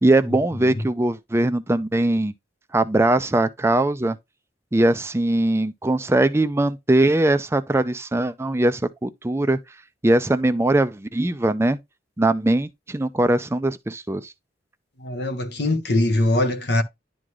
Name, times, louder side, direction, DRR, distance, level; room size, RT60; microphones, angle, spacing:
voice 1, 0.0-2.3 2.7-4.2 4.7-9.6 10.0-11.8 12.2-14.3, right 1 dB, 15° right, 0.5 m, -21 dB
voice 2, 15.0-16.8, left 1 dB, 65° left, 1.3 m, -22 dB
11.0 x 3.8 x 3.1 m
head